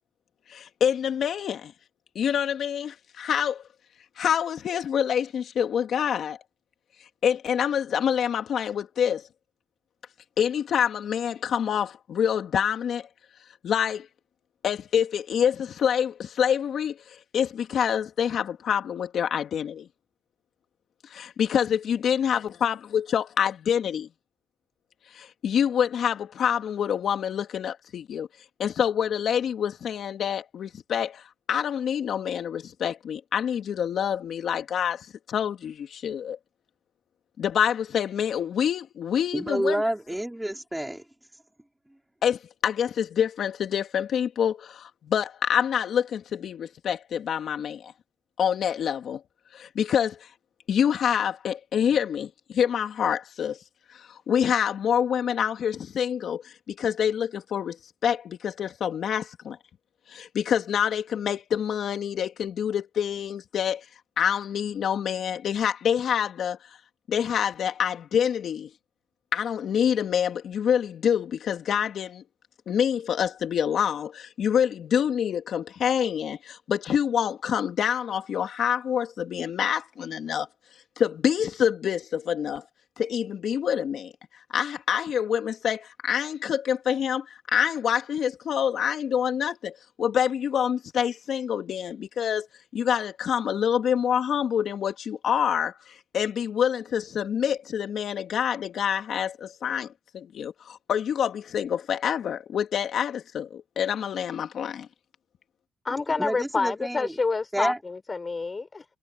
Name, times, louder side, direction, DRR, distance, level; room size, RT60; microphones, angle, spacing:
voice 1, 0.5-1.7 2.1-3.6 4.2-6.4 7.2-9.3 10.4-13.1 13.6-14.1 14.6-19.9 21.0-24.1 25.1-28.3 28.6-36.4 37.4-39.8 42.2-47.9 48.4-49.2 49.5-50.3 50.7-53.6 53.9-57.8 58.0-59.6 60.1-63.8 64.2-66.8 67.1-68.7 69.3-72.2 72.7-80.5 81.0-82.6 83.0-84.1 84.5-92.5 92.7-104.9, left 8 dB, 65° left, 2.6 m, -26 dB
voice 2, 39.3-41.0 105.9-107.2 107.5-107.8, right 1 dB, 5° right, 4.0 m, -29 dB
voice 3, 105.8-108.8, left 4 dB, 30° left, 3.9 m, -28 dB
cardioid pair, 90°, 0 cm